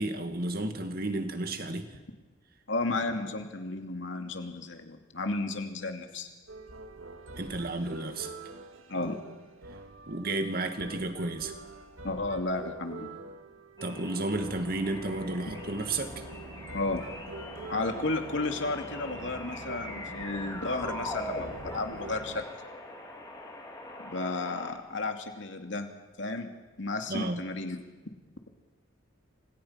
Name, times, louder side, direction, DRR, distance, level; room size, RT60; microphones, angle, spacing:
voice 1, 0.0-1.9 7.4-8.3 10.1-11.5 13.8-16.2 27.1-27.4, right 2 dB, 45° right, 6 dB, 2.3 m, -32 dB
voice 2, 2.7-6.3 8.9-9.2 12.0-13.2 16.7-17.0 17.7-22.4 24.0-25.9 26.2-26.5 26.8-27.8, left 2 dB, 65° left, 4 dB, 2.8 m, -33 dB
sound 1, 6.5-22.1, right 3 dB, 85° right, 2.1 m, -46 dB
sound 2, 13.8-24.7, left 1 dB, 20° left, 4.1 m, -42 dB
sound 3, 14.3-22.4, right 1 dB, 70° right, 2.1 m, -48 dB
29.0 x 27.0 x 5.9 m, 1.3 s
head